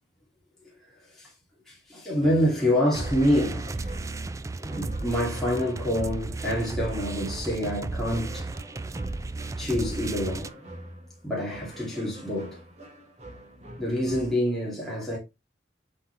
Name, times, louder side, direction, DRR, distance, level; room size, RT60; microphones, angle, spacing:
voice 1, 1.7-3.9 4.6-8.5 9.6-10.5 11.2-12.6 13.8-15.2, equal, ahead, 2.5 m, -27 dB
sound 1, 2.2-14.3, right 1 dB, 40° right, 1.9 m, -46 dB
sound 2, 2.9-10.5, right 2 dB, 20° right, 0.3 m, -34 dB
7.8 x 4.2 x 3.2 m
head